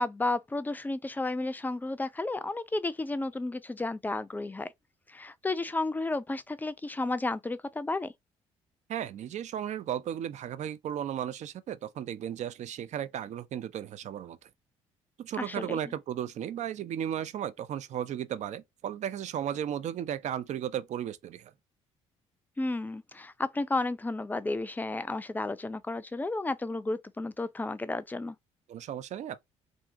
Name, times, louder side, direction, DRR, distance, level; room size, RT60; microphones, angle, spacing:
voice 1, 0.0-4.7 5.1-8.1 15.4-15.8 22.6-28.4, left 2 dB, 10° left, 0.4 m, -32 dB
voice 2, 8.9-14.5 15.2-21.5 28.7-29.4, right 10 dB, 50° right, 0.5 m, -35 dB
2.6 x 2.4 x 3.7 m
hypercardioid pair, 50°, 15 cm